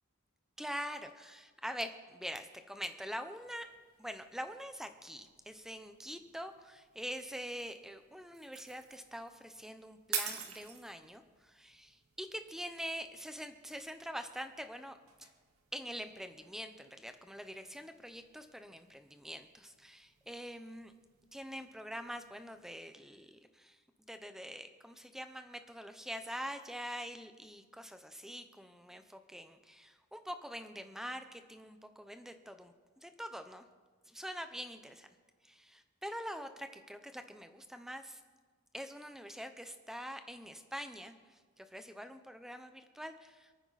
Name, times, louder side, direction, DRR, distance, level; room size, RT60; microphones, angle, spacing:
voice 1, 0.6-3.7 4.0-15.0 15.7-20.9 21.3-23.8 24.1-33.7 34.1-35.1 35.4-38.2 38.7-43.5, equal, ahead, 8 dB, 0.7 m, -44 dB
sound 1, 3.4-22.8, right 7 dB, 85° right, 1.8 m, -50 dB
27.0 x 9.5 x 4.1 m, 1.4 s
head